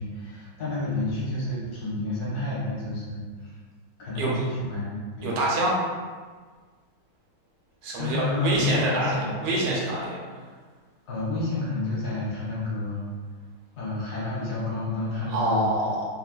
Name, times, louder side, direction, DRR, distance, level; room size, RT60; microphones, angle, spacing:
voice 1, 0.0-3.6 4.0-5.3 8.0-9.8 11.1-13.1 13.7-15.7, left 2 dB, 65° left, -7 dB, 1.3 m, -30 dB
voice 2, 5.2-5.8 7.8-10.2 15.3-16.1, right 1 dB, 80° right, -3 dB, 1.3 m, -26 dB
3.2 x 2.2 x 2.4 m, 1.5 s
omnidirectional pair, 1.9 m